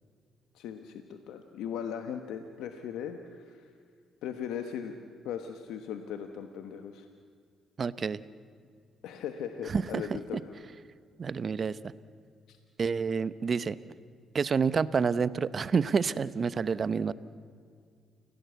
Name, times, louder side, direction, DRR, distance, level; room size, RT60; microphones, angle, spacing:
voice 1, 0.5-3.6 4.2-5.0 5.2-7.1 9.0-10.5 12.5-12.6, left 8 dB, 90° left, 7 dB, 1.2 m, -38 dB
voice 2, 7.8-8.2 9.7-10.4 11.2-11.8 12.8-13.8 14.3-17.1, right 5 dB, 45° right, 16 dB, 0.8 m, -28 dB
29.5 x 16.5 x 8.2 m, 2.1 s
cardioid pair, 90°, 0 cm